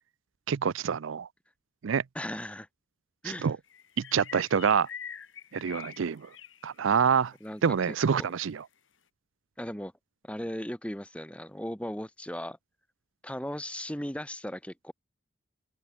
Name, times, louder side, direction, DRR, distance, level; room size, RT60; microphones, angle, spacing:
voice 1, 0.5-1.3 1.8-2.0 3.2-3.6 4.0-4.9 5.5-6.3 6.6-7.3 7.6-8.6, right 7 dB, 75° right, 0.5 m, -26 dB
voice 2, 2.1-2.7 3.2-3.5 7.4-7.8 8.1-8.3 9.6-9.9 10.2-12.6 13.2-14.9, equal, 5° left, 2.8 m, -37 dB
sound 1, 3.7-7.1 7.3-7.5 7.9-8.0, left 8 dB, 75° left, 2.9 m, -45 dB
open air
head